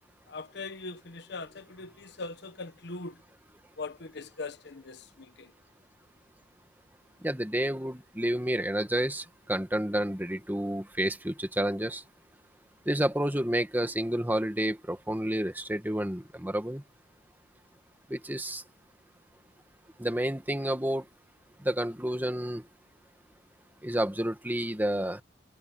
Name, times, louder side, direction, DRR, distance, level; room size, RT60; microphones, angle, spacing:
voice 1, 0.3-3.2 3.8-5.5, left 3 dB, 60° left, 1.2 m, -41 dB
voice 2, 7.2-9.2 9.5-12.0 12.9-16.8 18.1-18.6 20.0-21.0 21.7-22.6 23.8-25.2, right 1 dB, 10° right, 2.0 m, -30 dB
head